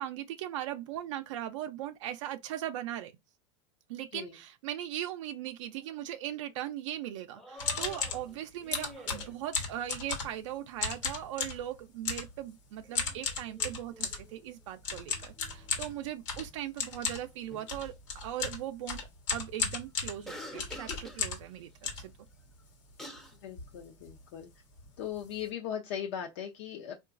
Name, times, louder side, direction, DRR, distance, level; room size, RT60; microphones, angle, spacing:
voice 1, 0.0-3.1 3.9-22.1, right 12 dB, 85° right, 0.4 m, -39 dB
sound 1, 5.6-6.0 6.3-6.4 7.3-9.4 12.8-14.5 14.9-15.7 17.5-17.9 20.2-21.3 22.6-22.7 23.0-23.3, left 1 dB, 5° left, 0.5 m, -48 dB
sound 2, 7.6-8.2 8.7-10.4 10.8-11.6 12.1-12.3 13.0-14.2 14.8-21.5 21.8-22.7 23.2-23.3 23.5-23.8 24.0-24.2 24.8-24.9 25.2-25.4, left 5 dB, 85° left, 1.1 m, -35 dB
voice 2, 23.4-24.5 25.0-26.9, left 9 dB, 70° left, 0.6 m, -38 dB
3.7 x 2.3 x 2.4 m
supercardioid pair, 145°, 16 cm